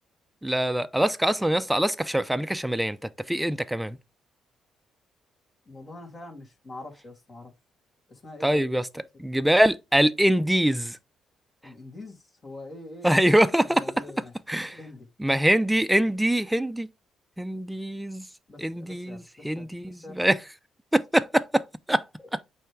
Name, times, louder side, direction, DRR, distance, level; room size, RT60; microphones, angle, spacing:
voice 1, 0.4-3.0 3.3-4.0 8.4-8.9 9.2-11.0 13.0-13.8 14.5-14.8 15.2-16.9 17.4-18.2 18.6-20.4 20.9-22.0, right 1 dB, 5° right, 0.6 m, -23 dB
voice 2, 5.7-7.5 8.1-8.7 11.6-13.4 13.6-14.3 14.6-15.1 18.5-20.2, left 2 dB, 40° left, 2.8 m, -44 dB
8.5 x 3.5 x 3.4 m
supercardioid pair, 65°, 0 cm